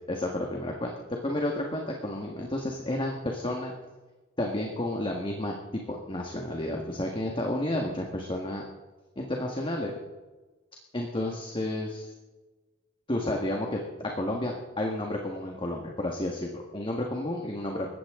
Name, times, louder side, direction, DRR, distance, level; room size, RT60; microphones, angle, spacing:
voice 1, 0.1-0.9 1.2-3.7 4.4-8.6 9.1-10.0 10.9-12.1 13.1-17.9, left 1 dB, 25° left, 1 dB, 1.7 m, -31 dB
20.5 x 15.5 x 3.8 m, 1.2 s
head